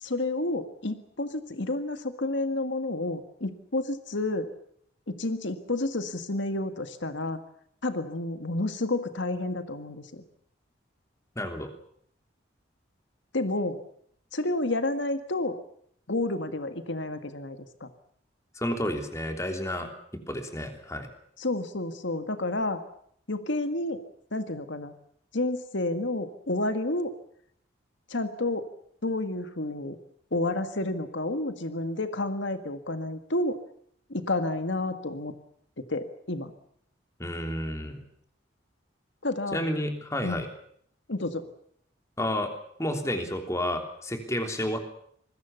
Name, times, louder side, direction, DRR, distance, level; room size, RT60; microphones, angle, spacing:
voice 1, 0.0-4.5 5.1-7.4 7.8-10.2 13.3-13.8 14.3-15.6 16.1-17.9 21.4-22.8 23.3-24.0 24.3-24.9 25.3-27.1 28.1-28.7 29.0-30.0 30.3-33.6 34.1-35.3 35.8-36.5 39.2-39.6 40.2-40.4 41.1-41.5, left 2 dB, 70° left, 8 dB, 1.8 m, -30 dB
voice 2, 11.3-11.7 18.5-19.9 20.3-21.1 37.2-38.0 39.5-40.5 42.2-42.5 42.8-44.8, left 1 dB, 15° left, 5 dB, 3.2 m, -30 dB
26.5 x 21.0 x 7.0 m, 0.66 s
head